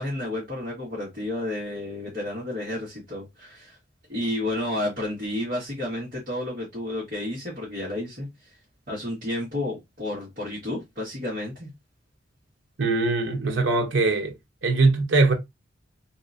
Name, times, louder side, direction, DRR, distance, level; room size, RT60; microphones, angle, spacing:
voice 1, 0.0-3.8 4.1-8.6 8.9-11.7, left 1 dB, 45° right, 1.4 m, -31 dB
voice 2, 12.8-14.3 14.6-15.3, right 3 dB, 75° right, 0.8 m, -21 dB
3.4 x 2.8 x 2.5 m
head